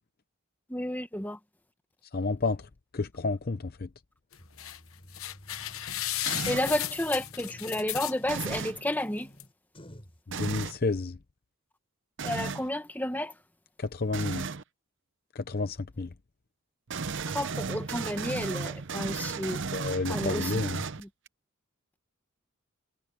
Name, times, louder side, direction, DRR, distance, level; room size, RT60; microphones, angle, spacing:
voice 1, 0.7-1.4 6.5-9.3 12.2-13.3 17.3-19.6 20.1-20.6 21.0-21.1, left 1 dB, 10° left, 1.6 m, -31 dB
voice 2, 2.1-2.6 2.9-3.9 10.4-11.2 13.8-14.4 15.4-16.1 19.7-20.8, left 3 dB, 45° left, 0.7 m, -30 dB
sound 1, 4.3-4.8 5.1-8.5 9.0-9.1 9.4-9.5, left 13 dB, 70° left, 1.0 m, -34 dB
sound 2, 4.4-10.2, equal, 25° left, 7.4 m, -52 dB
sound 3, 6.3-6.8 8.2-8.8 10.3-10.8 12.2-12.7 14.1-14.6 16.9-21.3, right 5 dB, 55° right, 0.7 m, -34 dB
head